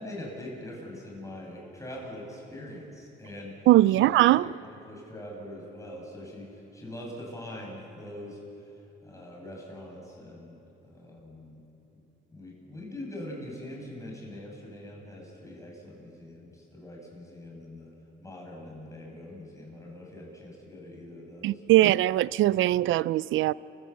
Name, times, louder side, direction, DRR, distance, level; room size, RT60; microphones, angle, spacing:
voice 1, 0.0-10.6 10.8-11.6 12.3-17.9 18.2-22.0, left 1 dB, 15° left, 7.6 m, -43 dB
voice 2, 3.7-4.5 21.4-23.5, right 16 dB, 75° right, 0.4 m, -21 dB
29.0 x 16.0 x 7.3 m
cardioid pair, 90°, 20 cm